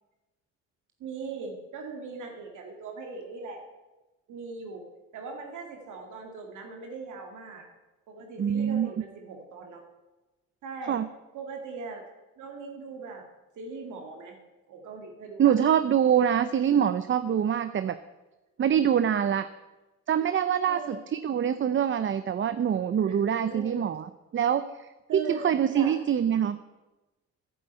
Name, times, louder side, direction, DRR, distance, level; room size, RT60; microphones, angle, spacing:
voice 1, 1.0-3.6 4.3-4.9 5.1-7.7 8.1-9.8 10.6-11.0 11.3-12.0 12.4-13.2 13.6-14.4 14.7-15.5 20.7-21.0 22.9-23.9 25.1-25.4 25.7-25.9, right 4 dB, 80° right, 2 dB, 2.0 m, -40 dB
voice 2, 8.4-8.9 10.9-11.0 15.4-18.0 18.6-19.5 20.1-26.6, right 9 dB, 40° right, 12 dB, 0.6 m, -25 dB
10.0 x 7.8 x 9.1 m, 1.1 s
cardioid pair, 90°, 30 cm